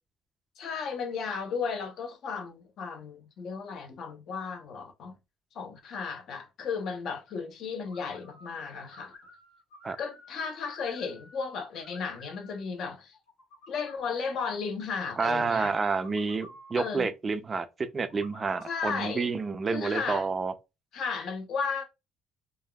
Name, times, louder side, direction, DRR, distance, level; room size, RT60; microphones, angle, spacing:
voice 1, 0.6-5.1 5.5-9.1 10.0-13.1 13.7-15.7 16.7-17.1 18.7-19.3 19.7-20.3 20.9-21.8, left 5 dB, 55° left, 0.7 m, -34 dB
sound 1, 7.8-8.6 8.8-11.5 11.7-12.6 13.1-14.1 15.0-16.9 18.0-19.1, left 1 dB, 85° left, 1.6 m, -52 dB
voice 2, 15.2-20.5, right 4 dB, 25° right, 0.4 m, -29 dB
3.3 x 2.2 x 2.2 m
cardioid pair, 140°, 0 cm